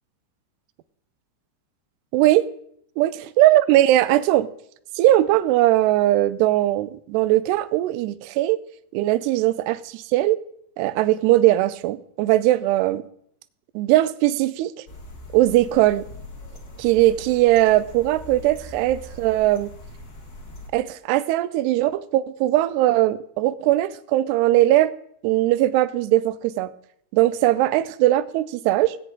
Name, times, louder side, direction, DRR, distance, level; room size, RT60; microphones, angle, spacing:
voice 1, 2.1-2.5 3.0-4.5 5.0-8.6 8.9-10.4 10.8-13.0 13.8-14.7 15.3-16.1 16.8-19.7 20.7-24.9 25.2-26.7 27.1-29.0, right 15 dB, 85° right, 2.7 m, -19 dB
sound 1, 14.9-20.7, equal, 40° left, 1.9 m, -41 dB
18.0 x 9.2 x 3.7 m
omnidirectional pair, 4.7 m